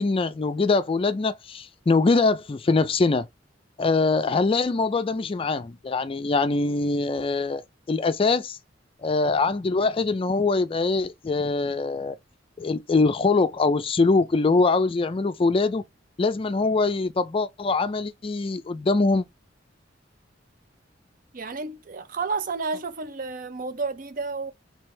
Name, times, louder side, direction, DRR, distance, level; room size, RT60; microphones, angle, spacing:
voice 1, 0.0-3.3 3.8-8.6 9.0-12.2 12.6-15.8 16.2-19.2, left 3 dB, 30° left, 0.4 m, -23 dB
voice 2, 21.3-24.5, right 4 dB, 50° right, 0.6 m, -31 dB
3.3 x 3.2 x 4.7 m
head